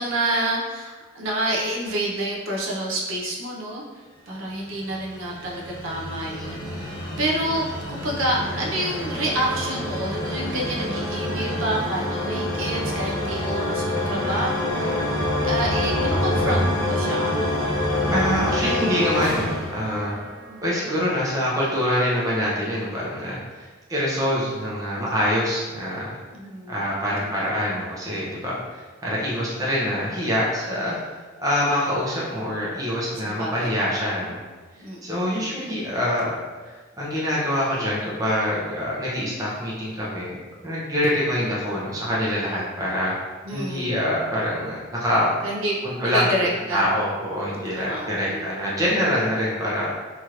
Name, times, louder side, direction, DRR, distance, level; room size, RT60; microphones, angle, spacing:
voice 1, 0.0-3.8 4.3-17.4 20.5-20.6 26.3-27.3 33.2-33.8 34.8-35.7 43.4-43.9 45.4-45.8 46.0-46.8 47.7-48.4, right 1 dB, 70° right, -3 dB, 0.6 m, -28 dB
sound 1, 4.5-20.6, left 1 dB, 20° left, 1.0 m, -26 dB
voice 2, 18.1-20.1 20.6-26.2 26.7-34.4 35.0-36.3 36.6-40.4 40.6-43.1 43.5-45.3 45.8-46.5 46.7-49.9, equal, 15° right, -6 dB, 0.6 m, -25 dB
3.0 x 2.9 x 2.4 m, 1.4 s
head